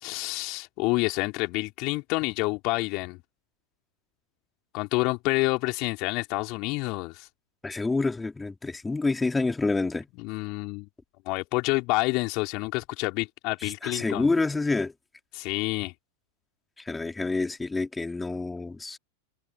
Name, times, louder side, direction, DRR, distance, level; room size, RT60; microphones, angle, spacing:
voice 1, 0.0-3.2 4.7-7.3 10.2-10.9 11.3-14.3 15.3-15.9, left 26 dB, 40° left, 3.9 m, -28 dB
voice 2, 7.6-10.1 13.6-14.9 16.8-19.0, left 3 dB, 10° left, 3.1 m, -28 dB
figure-of-eight pair, 90°, 0 cm